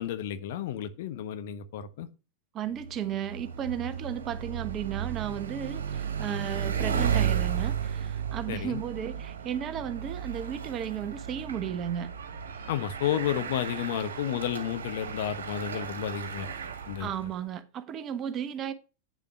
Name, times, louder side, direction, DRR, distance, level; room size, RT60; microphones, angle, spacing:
voice 1, 0.0-2.1 8.5-8.8 12.7-16.5 16.8-17.1, left 10 dB, 55° left, 1.2 m, -31 dB
voice 2, 2.5-12.1 17.0-18.7, right 9 dB, 30° right, 1.1 m, -34 dB
Bicycle, 2.7-17.4, right 7 dB, 65° right, 1.8 m, -34 dB
8.7 x 7.0 x 5.7 m
figure-of-eight pair, 90°, 0 cm